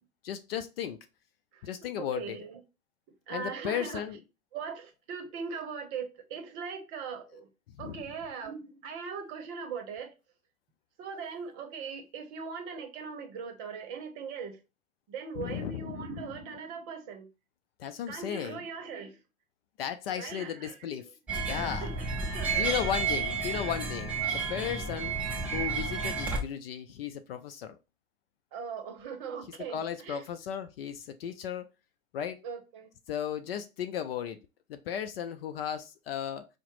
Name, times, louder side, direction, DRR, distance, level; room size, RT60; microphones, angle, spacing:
voice 1, 0.2-1.0 1.6-2.4 3.3-4.2 7.8-8.0 15.4-16.2 17.8-18.6 19.8-21.9 22.6-25.2 25.5-27.8 29.6-31.7 32.1-32.4 33.1-34.4 34.7-36.5, left 9 dB, 45° left, 0.5 m, -35 dB
voice 2, 2.0-2.6 3.3-4.0 4.5-7.5 7.8-10.1 11.0-14.6 15.1-17.3 18.1-19.2 20.2-20.8 21.5-22.6 28.5-30.2 32.4-32.9, right 6 dB, 35° right, 0.9 m, -40 dB
sound 1, 21.3-26.4, right 4 dB, 5° right, 0.5 m, -31 dB
5.6 x 2.1 x 3.0 m
hypercardioid pair, 110°, 42 cm